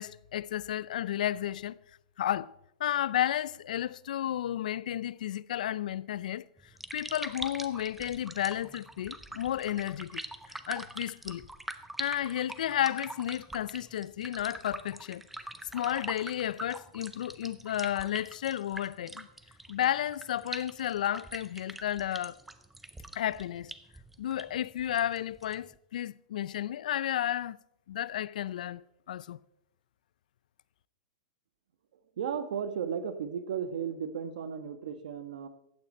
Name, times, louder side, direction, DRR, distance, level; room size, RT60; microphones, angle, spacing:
voice 1, 0.0-1.8 2.2-2.5 2.8-6.5 6.9-10.2 10.5-11.5 12.0-15.2 15.7-19.3 19.7-22.4 23.2-23.7 24.2-27.6 27.9-29.4, left 11 dB, 70° left, 0.4 m, -32 dB
sound 1, 6.6-25.7, right 2 dB, 5° right, 0.5 m, -44 dB
voice 2, 32.2-35.5, right 7 dB, 75° right, 1.2 m, -35 dB
15.0 x 9.2 x 4.3 m
supercardioid pair, 170°, 4 cm